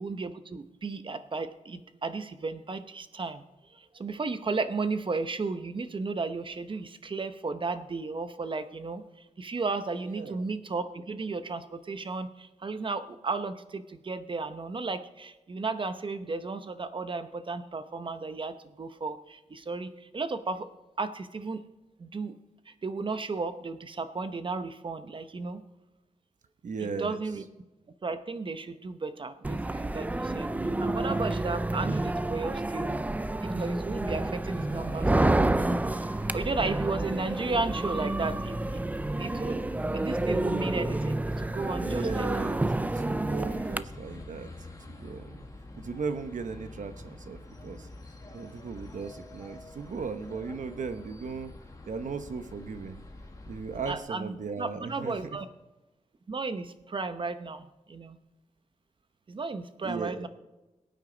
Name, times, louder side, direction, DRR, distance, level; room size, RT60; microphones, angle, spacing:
voice 1, 0.0-3.4 3.7-9.0 9.4-20.7 21.0-21.6 22.0-22.3 22.7-25.6 26.8-27.4 28.0-30.5 30.8-33.0 33.4-35.4 36.3-38.6 39.2-39.6 39.9-42.5 53.9-55.5 56.3-58.2 59.3-60.3, right 3 dB, 40° right, 10 dB, 0.8 m, -34 dB
voice 2, 10.1-10.5 26.6-27.2 41.8-45.4 45.7-47.9 48.3-51.5 51.8-53.0 53.5-55.3 59.8-60.2, right 5 dB, 70° right, 9 dB, 1.1 m, -37 dB
sound 1, 29.4-43.8, right 2 dB, 10° right, 0.4 m, -29 dB
sound 2, 34.4-54.0, left 2 dB, 25° left, 1.7 m, -46 dB
21.5 x 9.2 x 3.9 m, 1.1 s
wide cardioid pair, 130°, 13 cm